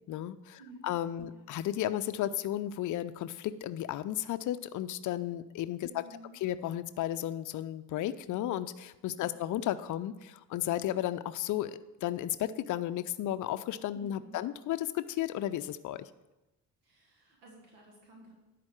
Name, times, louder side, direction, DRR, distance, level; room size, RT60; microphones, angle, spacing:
voice 1, 0.0-5.9 6.4-16.1, left 12 dB, 40° left, 13 dB, 0.5 m, -34 dB
voice 2, 5.9-6.4 9.1-9.4 14.0-14.4 16.8-18.3, right 1 dB, 75° right, -1 dB, 1.8 m, -54 dB
10.5 x 4.2 x 7.5 m, 1.0 s
figure-of-eight pair, 50°, 49 cm